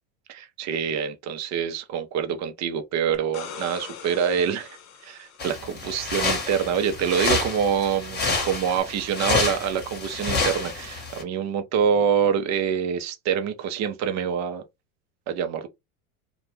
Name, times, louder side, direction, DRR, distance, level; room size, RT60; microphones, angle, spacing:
voice 1, 0.3-4.8 5.0-14.6 15.3-15.7, right 7 dB, 40° right, 0.7 m, -26 dB
sound 1, 3.1-6.0 8.8-8.9, left 7 dB, 40° left, 0.8 m, -42 dB
sound 2, 5.4-11.2, left 3 dB, 20° left, 1.1 m, -28 dB
2.5 x 2.3 x 3.2 m
hypercardioid pair, 100°, 43 cm